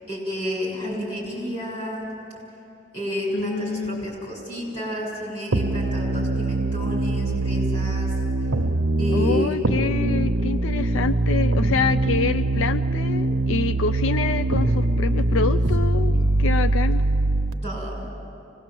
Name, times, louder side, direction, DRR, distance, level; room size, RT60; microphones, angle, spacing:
voice 1, 0.1-2.1 2.9-8.1 9.0-9.6 12.1-12.2 17.6-18.0, equal, 30° left, -3 dB, 6.3 m, -31 dB
voice 2, 3.3-4.1 9.1-17.0, left 5 dB, 80° left, 13 dB, 0.4 m, -27 dB
sound 1, 5.5-17.5, right 2 dB, 90° right, 1.0 m, -22 dB
24.5 x 19.0 x 7.6 m, 2.8 s
head